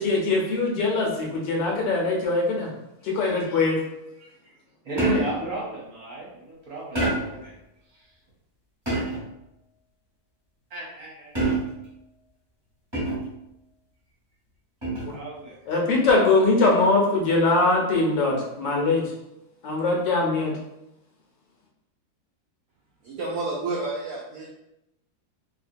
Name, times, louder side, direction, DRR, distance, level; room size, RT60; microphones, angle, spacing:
voice 1, 0.0-2.7 3.0-3.8 5.0-5.2 15.0-15.1 15.7-19.0 19.6-20.5, left 3 dB, 75° left, -1 dB, 1.3 m, -22 dB
voice 2, 4.2-4.6 4.8-7.5 7.9-8.1 10.7-11.6 15.1-15.5, right 3 dB, 60° right, -5 dB, 1.1 m, -35 dB
sound 1, 5.0-5.5 7.0-7.5 8.9-9.4 11.4-11.9 12.9-13.4 14.8-15.2, right 2 dB, 15° right, 1.2 m, -27 dB
voice 3, 23.0-24.5, right 3 dB, 90° right, -4 dB, 0.7 m, -30 dB
2.8 x 2.7 x 2.5 m, 0.87 s
omnidirectional pair, 2.1 m